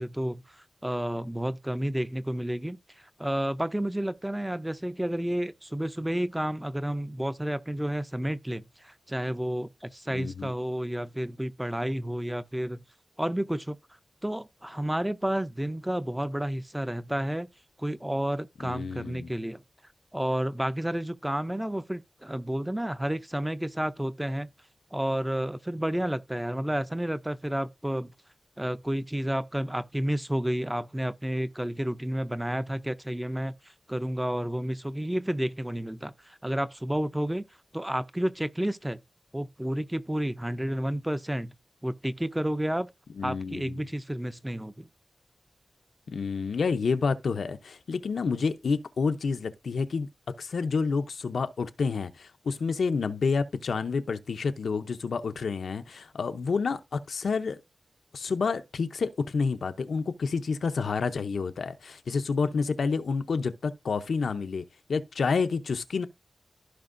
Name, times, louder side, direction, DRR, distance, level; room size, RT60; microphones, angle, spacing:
voice 1, 0.0-12.8 13.2-13.8 14.2-17.5 17.8-19.6 20.1-24.5 24.9-28.1 28.6-33.5 33.9-37.4 37.7-39.0 39.3-41.5 41.8-42.9 43.2-44.9, right 1 dB, 10° right, 0.5 m, -31 dB
voice 2, 10.1-10.5 18.6-19.3 43.2-43.9 46.1-50.1 50.4-57.6 58.1-66.1, left 5 dB, 90° left, 0.6 m, -29 dB
15.0 x 5.2 x 2.6 m
wide cardioid pair, 110°, 0 cm